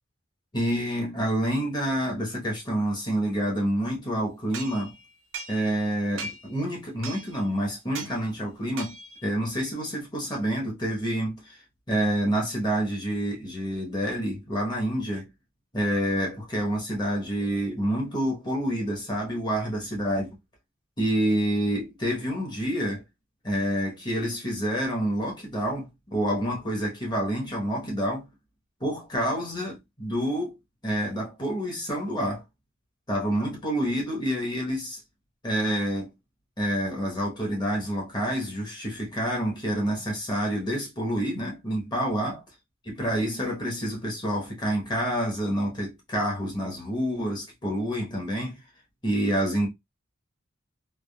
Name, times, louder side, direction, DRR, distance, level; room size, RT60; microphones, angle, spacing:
voice 1, 0.5-4.9 5.5-9.0 9.2-11.6 11.9-15.3 15.7-20.3 21.0-23.0 23.4-28.2 28.8-30.6 30.8-32.4 33.1-35.0 35.4-36.1 36.6-42.4 42.8-48.6 49.0-49.7, equal, 20° left, 0.9 m, -28 dB
sound 1, 4.5-5.9 6.2-6.6 7.0-7.5 7.9-8.2 8.8-9.3, right 3 dB, 75° right, 0.5 m, -39 dB
3.4 x 2.1 x 2.2 m
head